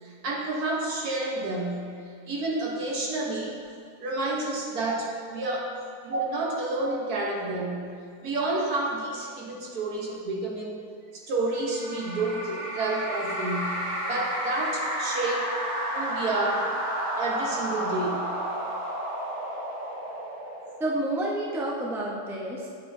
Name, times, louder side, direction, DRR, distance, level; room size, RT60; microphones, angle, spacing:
voice 1, 0.0-3.6 4.0-5.7 6.0-10.8 11.1-15.5 15.9-16.7 17.2-18.3, right 2 dB, 70° right, -2 dB, 1.6 m, -30 dB
sound 1, 11.5-21.2, right 1 dB, 20° right, 1.2 m, -32 dB
voice 2, 20.8-22.7, right 1 dB, ahead, -4 dB, 0.7 m, -29 dB
9.1 x 7.4 x 2.7 m, 2.4 s
omnidirectional pair, 1.7 m